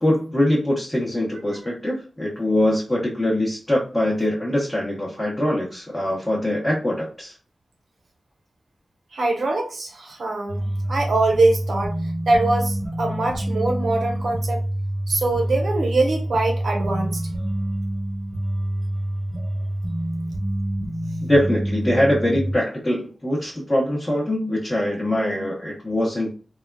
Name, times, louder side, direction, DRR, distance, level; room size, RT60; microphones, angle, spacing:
voice 1, 0.0-7.3 21.2-26.3, left 1 dB, 15° left, -6 dB, 0.9 m, -23 dB
voice 2, 9.1-10.6 10.9-11.9 12.3-14.6 15.1-17.2, right 2 dB, 85° right, 1 dB, 0.8 m, -22 dB
sound 1, 10.5-22.5, right 1 dB, 20° right, 1.2 m, -27 dB
3.4 x 2.3 x 2.2 m, 0.36 s
wide cardioid pair, 115°, 0 cm